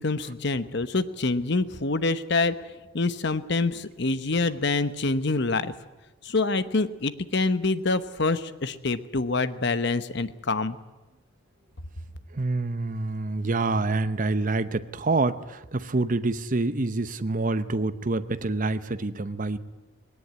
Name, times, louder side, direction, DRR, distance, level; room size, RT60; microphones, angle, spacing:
voice 1, 0.0-2.5 2.9-5.7 6.2-10.8, left 3 dB, 55° left, 12 dB, 1.0 m, -26 dB
voice 2, 12.3-19.6, right 2 dB, 40° right, 12 dB, 0.8 m, -27 dB
19.5 x 18.0 x 9.5 m, 1.1 s
head